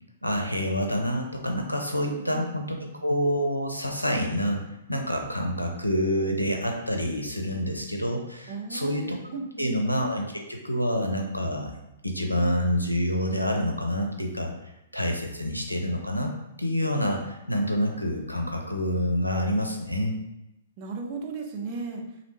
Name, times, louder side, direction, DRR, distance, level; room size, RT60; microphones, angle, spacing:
voice 1, 0.2-4.6 4.9-9.0 9.6-11.7 12.0-14.5 14.9-16.3 16.6-20.2, equal, 90° left, 2 dB, 0.5 m, -27 dB
voice 2, 2.1-2.5 8.5-9.8 20.8-22.0, right 3 dB, 35° right, 1 dB, 0.5 m, -35 dB
3.0 x 2.6 x 3.2 m, 0.91 s
figure-of-eight pair, 115°, 0 cm